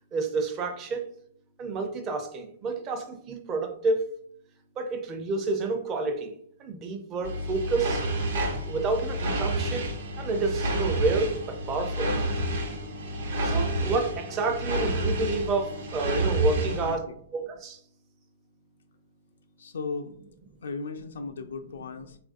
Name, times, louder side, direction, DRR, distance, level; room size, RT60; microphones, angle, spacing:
voice 1, 0.1-1.1 1.6-4.1 4.8-6.3 6.6-8.0 8.6-9.9 10.2-12.1 13.4-17.0 17.3-17.8, right 3 dB, 20° right, 5 dB, 0.5 m, -29 dB
sound 1, 7.2-17.0, right 1 dB, 65° right, 0.8 m, -29 dB
voice 2, 16.6-17.2 19.6-20.1 20.6-22.2, left 4 dB, 80° left, 6 dB, 0.4 m, -36 dB
3.7 x 2.5 x 2.5 m, 0.63 s
hypercardioid pair, 155°, 0 cm